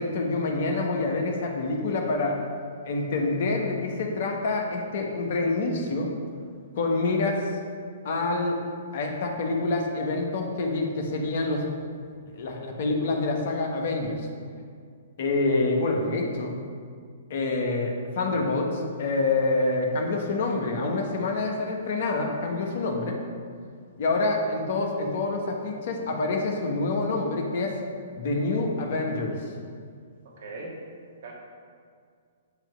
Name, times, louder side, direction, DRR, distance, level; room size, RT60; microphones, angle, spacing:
voice 1, 0.0-2.4 2.8-6.1 6.8-7.4 8.0-8.6 8.9-11.7 12.4-14.3 15.2-16.6 17.3-23.2 24.0-27.8 28.2-29.4, left 3 dB, 60° left, 1 dB, 1.2 m, -27 dB
voice 2, 30.3-30.8 31.2-31.3, right 2 dB, 65° right, -2 dB, 1.7 m, -39 dB
8.9 x 3.0 x 6.0 m, 2.1 s
hypercardioid pair, 130°, 0 cm